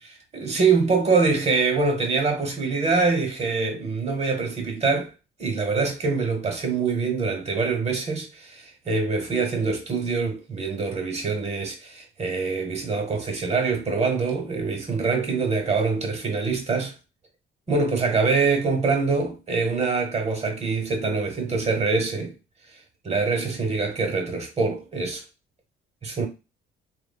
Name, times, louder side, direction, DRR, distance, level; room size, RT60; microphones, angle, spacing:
voice 1, 0.3-5.1 5.4-16.9 17.7-22.3 23.0-25.2 26.0-26.3, right 4 dB, 35° right, 1.0 m, -24 dB
3.0 x 2.2 x 2.2 m
cardioid pair, 90°, 20 cm